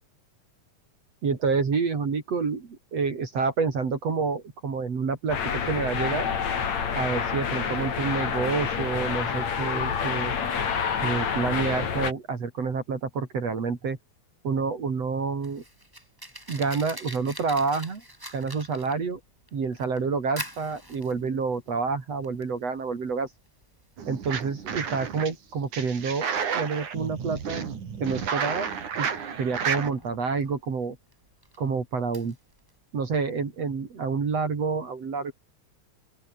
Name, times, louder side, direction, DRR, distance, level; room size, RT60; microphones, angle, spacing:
voice 1, 1.2-6.3 7.0-10.3 11.0-14.0 14.4-15.6 16.5-18.0 18.3-19.2 19.5-23.3 24.1-26.3 26.5-27.7 28.0-28.7 29.0-29.1 29.3-31.0 31.6-32.4 32.9-35.3, right 5 dB, 55° right, 4.3 m, -28 dB
sound 1, 5.3-12.1, left 7 dB, 60° left, 4.1 m, -28 dB
Fire, 15.1-32.8, right 1 dB, 5° right, 6.2 m, -46 dB
sound 2, 24.0-25.3 25.7-29.9, right 7 dB, 75° right, 4.6 m, -31 dB
open air
omnidirectional pair, 3.5 m